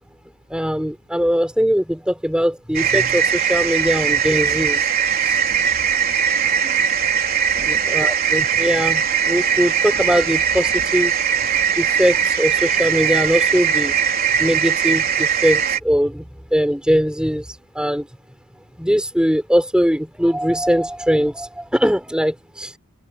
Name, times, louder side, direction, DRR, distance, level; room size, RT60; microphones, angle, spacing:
voice 1, 0.5-4.9 5.2-5.4 6.6-6.8 7.6-11.1 11.8-13.9 14.4-16.2 16.5-18.1 18.8-22.8, equal, 5° right, 5.0 m, -21 dB
sound 1, 2.7-15.8, right 7 dB, 45° right, 4.0 m, -20 dB
head